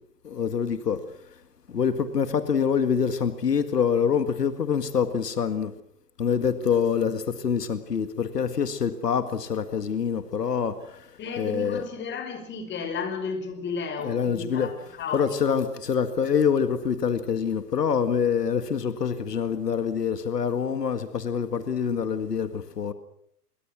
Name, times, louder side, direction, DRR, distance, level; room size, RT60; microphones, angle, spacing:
voice 1, 0.3-1.0 1.7-5.7 6.2-10.7 11.4-11.8 14.0-14.7 15.1-22.9, left 7 dB, 80° left, 1.9 m, -25 dB
voice 2, 11.2-14.7 15.0-15.6, left 5 dB, 25° left, 5.5 m, -33 dB
26.0 x 23.5 x 6.2 m
hypercardioid pair, 115°, 47 cm